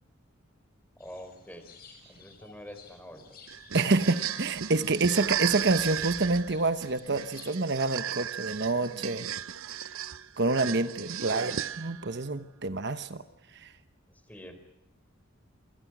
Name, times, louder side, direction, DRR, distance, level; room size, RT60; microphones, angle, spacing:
sound 1, 1.0-7.5, left 3 dB, 50° left, 6.6 m, -53 dB
voice 1, 1.0-1.7 2.1-3.4 3.7-3.8 11.3-11.6 14.1-14.6, equal, 10° left, 8 dB, 4.3 m, -46 dB
sound 2, 3.5-12.1, right 9 dB, 90° right, 0.8 m, -35 dB
voice 2, 3.7-9.3 10.4-11.5 11.8-13.2 13.5-13.7, right 3 dB, 55° right, 10 dB, 1.1 m, -27 dB
28.0 x 25.5 x 6.2 m, 0.87 s
head